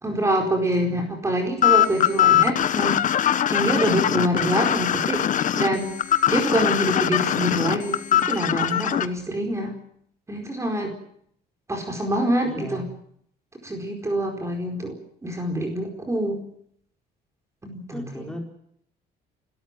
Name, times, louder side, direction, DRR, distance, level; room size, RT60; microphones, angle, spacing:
voice 1, 0.0-3.0 3.5-5.2 5.5-6.0 6.3-9.8 10.3-11.0 11.7-12.9 13.6-16.4 17.6-18.3, right 1 dB, 15° right, 3 dB, 4.6 m, -25 dB
sound 1, 1.6-9.1, left 11 dB, 50° left, 1.1 m, -21 dB
voice 2, 12.5-12.9 17.9-18.4, equal, 5° left, 2 dB, 4.9 m, -35 dB
29.0 x 13.5 x 9.1 m, 0.71 s
cardioid pair, 110°, 17 cm